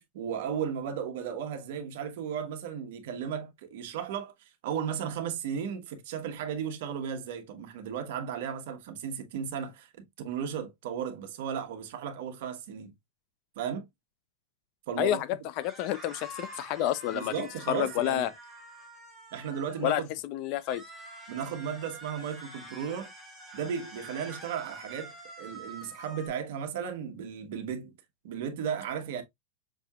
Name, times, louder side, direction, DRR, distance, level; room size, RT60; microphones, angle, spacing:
voice 1, 0.0-12.9 13.6-13.8 14.9-15.2 17.1-18.3 19.3-20.1 21.3-23.1 23.5-27.9 28.2-29.2, right 8 dB, 60° right, 1.1 m, -35 dB
voice 2, 15.0-18.3 19.8-20.8, left 12 dB, 40° left, 0.4 m, -30 dB
sound 1, 15.6-20.0 20.6-26.3, right 1 dB, 5° left, 1.6 m, -47 dB
6.0 x 2.8 x 2.3 m
supercardioid pair, 160°, 0 cm